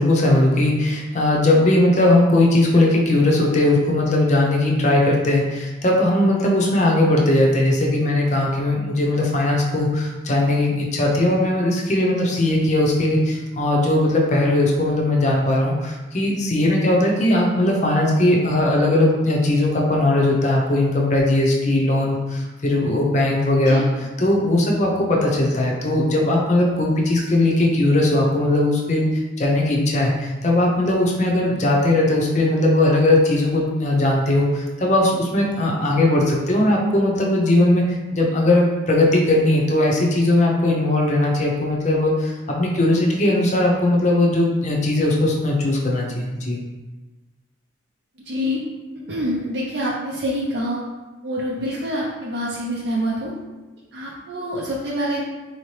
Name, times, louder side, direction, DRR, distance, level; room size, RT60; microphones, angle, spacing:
voice 1, 0.0-23.8 24.2-29.1 29.4-37.9 38.1-46.6, left 1 dB, 35° left, -1 dB, 0.6 m, -19 dB
voice 2, 48.3-48.6 49.1-50.8 51.2-53.3 53.9-55.2, equal, 60° right, -5 dB, 0.5 m, -26 dB
4.3 x 2.8 x 3.2 m, 1.2 s
head